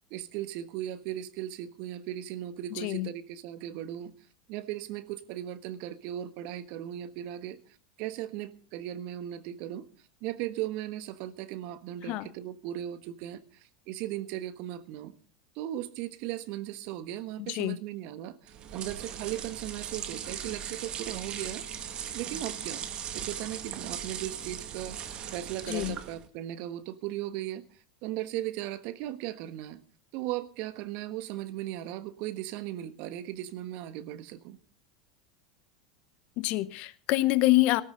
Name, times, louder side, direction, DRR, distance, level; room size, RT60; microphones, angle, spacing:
voice 1, 0.0-4.1 4.5-7.6 8.0-9.9 10.2-15.1 15.5-21.6 22.1-22.9 23.1-25.0 25.3-27.6 28.0-29.8 30.1-34.6, right 13 dB, 55° right, 1.4 m, -37 dB
voice 2, 2.7-3.1 12.1-12.3 17.5-17.8 25.7-25.9 36.4-37.8, left 18 dB, 50° left, 0.9 m, -26 dB
sound 1, 18.5-26.3, right 9 dB, 40° right, 2.0 m, -38 dB
19.0 x 13.0 x 3.9 m
hypercardioid pair, 85°, 3 cm